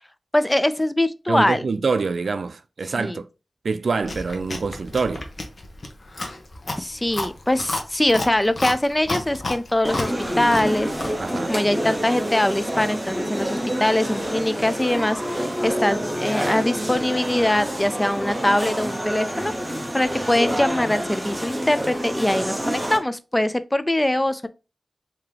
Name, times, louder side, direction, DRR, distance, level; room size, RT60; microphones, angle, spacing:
voice 1, 0.3-1.7 3.0-3.2 6.8-10.1 10.4-10.9 11.5-24.5, left 1 dB, 15° left, 0.3 m, -22 dB
voice 2, 1.3-3.2 3.6-5.3 11.2-11.5, right 4 dB, 70° right, 0.3 m, -25 dB
Chewing mastication, 4.0-11.2, left 2 dB, 50° left, 0.8 m, -32 dB
sound 1, 9.8-23.0, equal, 10° right, 0.7 m, -27 dB
3.7 x 2.8 x 3.3 m
wide cardioid pair, 90°, 0 cm